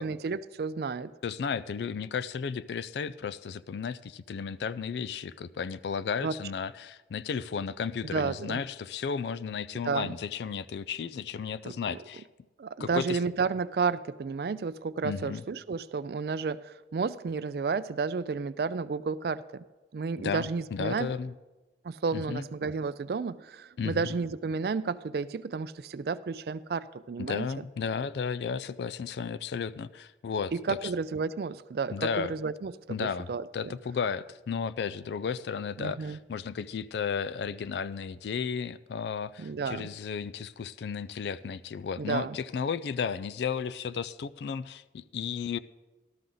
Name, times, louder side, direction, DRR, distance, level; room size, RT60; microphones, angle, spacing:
voice 1, 0.0-1.1 6.2-6.4 8.1-8.6 9.8-10.1 11.6-11.8 12.6-19.6 19.9-21.1 21.8-27.5 30.5-32.7 33.0-33.7 35.8-36.2 39.4-39.9 42.0-42.4, right 5 dB, 60° right, 14 dB, 0.4 m, -32 dB
voice 2, 1.2-12.2 12.8-13.2 15.0-15.4 20.2-21.4 22.1-22.4 23.8-24.0 27.2-30.9 31.9-32.3 32.9-45.6, left 6 dB, 70° left, 16 dB, 0.3 m, -34 dB
13.5 x 12.5 x 3.9 m, 1.1 s
head